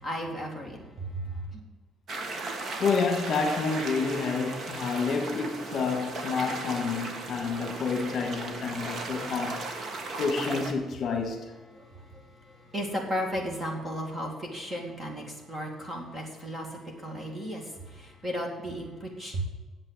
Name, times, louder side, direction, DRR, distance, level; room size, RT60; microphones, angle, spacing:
voice 1, 0.0-1.6 11.7-19.4, equal, 15° right, 2.1 m, -35 dB
sound 1, 2.1-10.7, right 3 dB, 40° right, 1.3 m, -36 dB
voice 2, 2.8-9.6 10.2-11.5, left 4 dB, 45° left, 1.6 m, -29 dB
8.9 x 7.7 x 8.6 m
cardioid pair, 175°, 0 cm